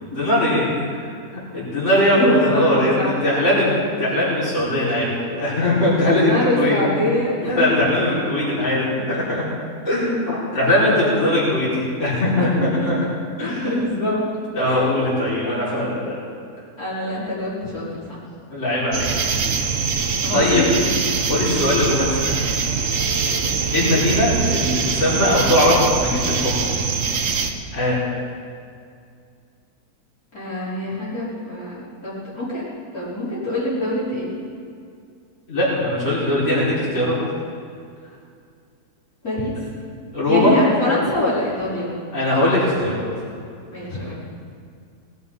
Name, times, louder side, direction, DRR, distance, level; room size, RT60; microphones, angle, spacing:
voice 1, 0.1-1.0 1.5-3.0 3.2-6.8 7.4-9.4 9.8-12.9 13.4-13.7 14.5-16.2 18.5-19.1 20.3-20.6 21.3-22.4 23.7-26.6 27.7-28.0 35.5-37.2 40.1-40.5 42.1-43.0, left 1 dB, 45° left, -10 dB, 5.2 m, -20 dB
voice 2, 1.9-3.1 5.4-5.5 6.1-7.8 8.1-8.2 10.9-11.2 12.4-12.9 13.4-14.3 14.6-14.8 15.4-15.9 16.8-18.2 19.2-19.5 20.2-20.9 23.3-23.5 30.3-32.6 32.9-34.3 39.2-39.6 40.3-41.9 43.7-44.2, left 1 dB, 65° left, -10 dB, 5.5 m, -25 dB
sound 1, 18.9-27.5, right 5 dB, 55° right, 1.4 m, -23 dB
19.5 x 12.5 x 5.6 m, 2.3 s
omnidirectional pair, 1.7 m